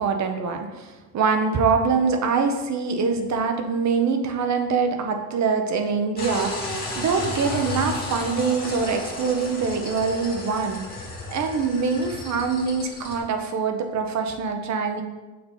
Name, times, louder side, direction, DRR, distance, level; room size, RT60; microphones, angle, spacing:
voice 1, 0.0-10.8 11.3-15.0, right 5 dB, 45° right, 5 dB, 0.8 m, -24 dB
sound 1, 6.2-13.2, left 2 dB, 25° left, 1.5 m, -33 dB
6.7 x 2.8 x 5.4 m, 1.2 s
cardioid pair, 135°, 38 cm